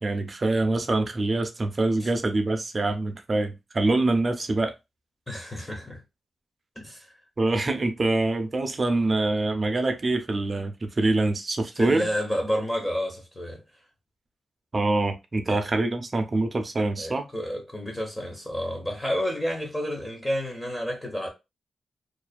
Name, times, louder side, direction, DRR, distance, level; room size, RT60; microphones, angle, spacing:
voice 1, 0.0-4.7 7.4-12.1 14.7-17.3, right 2 dB, 30° right, 0.4 m, -25 dB
voice 2, 5.3-6.0 6.8-7.1 11.8-13.6 15.5-15.6 17.0-21.3, equal, 15° left, 0.6 m, -30 dB
2.4 x 2.3 x 2.2 m
wide cardioid pair, 120°, 0 cm